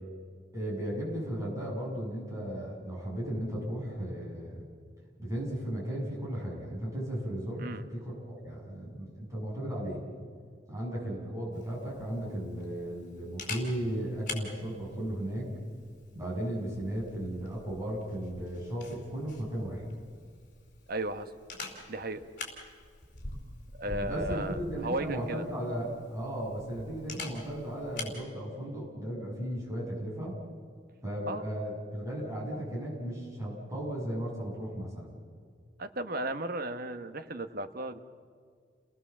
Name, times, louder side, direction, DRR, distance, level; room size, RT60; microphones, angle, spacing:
voice 1, 0.5-4.6 5.2-10.0 10.7-15.5 16.1-19.8 23.8-30.4 31.0-35.1, right 1 dB, 15° right, -4 dB, 7.5 m, -35 dB
Camera, 11.5-28.2, left 3 dB, 45° left, 4.6 m, -45 dB
voice 2, 20.9-21.3 21.9-22.2 23.8-25.4 31.3-31.5 35.8-38.0, right 1 dB, 55° right, 8 dB, 1.1 m, -35 dB
30.0 x 19.0 x 7.3 m, 2.1 s
head